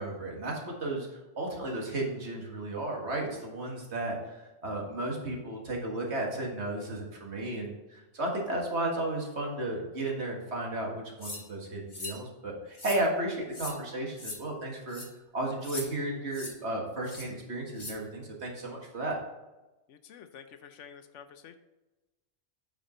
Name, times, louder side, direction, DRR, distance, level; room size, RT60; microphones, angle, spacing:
voice 1, 0.0-15.0 15.3-19.2, right 1 dB, 60° right, -1 dB, 2.0 m, -34 dB
sound 1, 11.2-11.4 11.9-12.2 12.7-13.0 13.5-13.8 14.2-14.4 14.9-15.1 15.6-15.9 16.3-16.5 17.0-17.3 17.8-17.9, left 2 dB, 25° left, 1.3 m, -39 dB
voice 2, 19.9-21.6, left 7 dB, 75° left, 9 dB, 1.0 m, -49 dB
8.9 x 5.2 x 4.3 m, 1.1 s
omnidirectional pair, 1.3 m